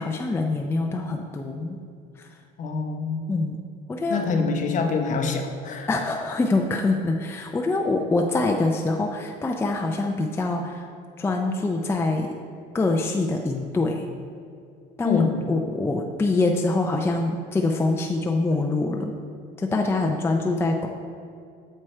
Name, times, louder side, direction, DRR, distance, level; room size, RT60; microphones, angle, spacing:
voice 1, 0.0-1.8 3.3-3.6 3.9-4.4 5.9-10.8 11.2-12.3 12.7-14.0 15.0-19.1 19.6-20.9, left 2 dB, 15° left, 2 dB, 0.4 m, -24 dB
voice 2, 2.6-3.2 4.1-5.9 15.0-15.4, left 5 dB, 40° left, 4 dB, 0.8 m, -25 dB
7.6 x 4.6 x 4.4 m, 2.4 s
cardioid pair, 120°, 19 cm